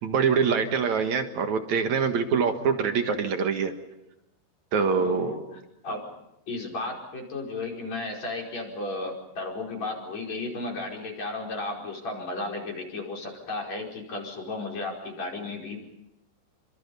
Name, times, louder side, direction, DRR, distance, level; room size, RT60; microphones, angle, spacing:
voice 1, 0.0-3.7 4.7-5.4, right 6 dB, 55° right, 7 dB, 2.4 m, -24 dB
voice 2, 4.9-5.4 5.8-6.0 6.5-15.8, left 2 dB, 40° left, -1 dB, 6.0 m, -34 dB
28.0 x 25.5 x 5.5 m, 0.86 s
omnidirectional pair, 4.7 m